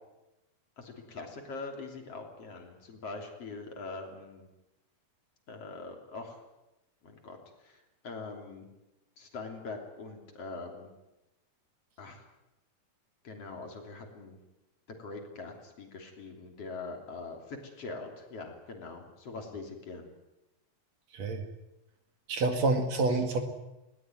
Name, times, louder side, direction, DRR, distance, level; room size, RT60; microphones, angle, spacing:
voice 1, 0.8-4.5 5.5-6.4 7.0-8.7 9.2-10.9 12.0-12.3 13.2-14.4 14.9-20.1, left 3 dB, 50° left, 3 dB, 4.0 m, -43 dB
voice 2, 21.1-21.4 22.3-23.4, right 3 dB, 60° right, 6 dB, 3.2 m, -27 dB
20.0 x 18.5 x 9.4 m, 0.96 s
omnidirectional pair, 3.5 m